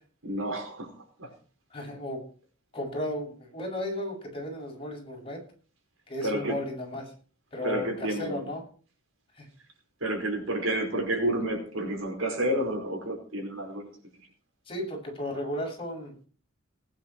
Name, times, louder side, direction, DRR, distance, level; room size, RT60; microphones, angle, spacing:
voice 1, 0.2-1.3 6.2-6.6 7.6-8.5 10.0-13.9, right 1 dB, 80° right, 3 dB, 5.1 m, -30 dB
voice 2, 1.7-2.2 2.7-5.4 6.1-7.1 7.5-8.6 9.4-9.5 14.7-16.1, left 1 dB, 25° left, -1 dB, 7.4 m, -34 dB
19.5 x 10.5 x 4.6 m, 0.40 s
head